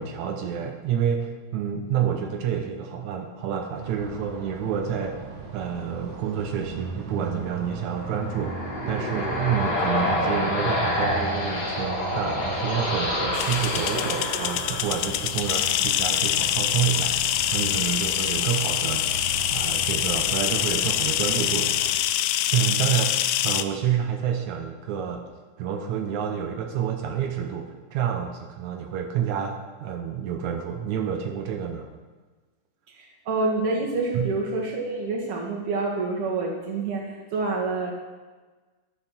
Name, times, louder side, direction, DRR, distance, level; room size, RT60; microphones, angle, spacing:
voice 1, 0.0-5.3 5.5-19.1 19.5-21.7 22.5-25.2 25.6-31.9 34.1-34.3, right 8 dB, 85° right, 3 dB, 1.6 m, -29 dB
sound 1, 3.7-21.9, right 5 dB, 60° right, 2.3 m, -38 dB
sound 2, 7.8-15.4, left 1 dB, 55° left, 1.0 m, -28 dB
sound 3, 13.3-23.6, left 12 dB, 80° left, 2.2 m, -25 dB
voice 2, 32.9-37.9, right 3 dB, 45° right, -1 dB, 2.2 m, -27 dB
11.5 x 9.3 x 5.9 m, 1.3 s
omnidirectional pair, 4.6 m